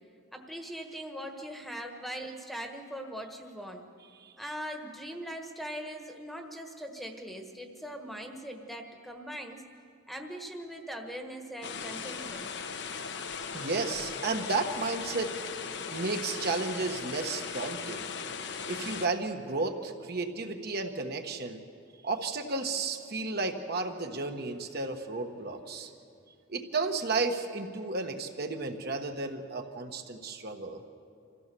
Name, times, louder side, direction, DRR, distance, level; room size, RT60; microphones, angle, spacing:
voice 1, 0.3-3.9 4.4-9.6 10.1-12.5, equal, ahead, 4 dB, 1.3 m, -41 dB
sound 1, 11.6-19.1, left 6 dB, 60° left, 1.0 m, -38 dB
voice 2, 13.5-15.3 15.9-18.1 18.7-21.6 22.0-25.9 26.5-30.8, right 3 dB, 55° right, 4 dB, 1.3 m, -33 dB
25.5 x 15.5 x 6.9 m, 2.4 s
head